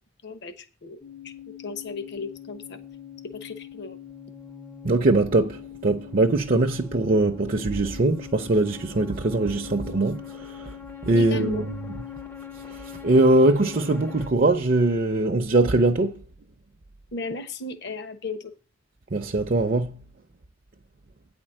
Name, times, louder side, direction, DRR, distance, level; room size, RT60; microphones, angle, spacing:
voice 1, 0.2-1.0 1.2-1.3 1.6-2.8 3.3-4.0 11.1-11.7 17.1-18.5, left 2 dB, 55° left, 1.1 m, -35 dB
sound 1, 1.0-14.3, left 9 dB, 10° left, 0.5 m, -42 dB
voice 2, 4.8-10.8 11.0-11.7 12.7-16.2 19.1-20.0, right 2 dB, 45° right, 0.6 m, -22 dB
9.3 x 4.4 x 7.4 m
head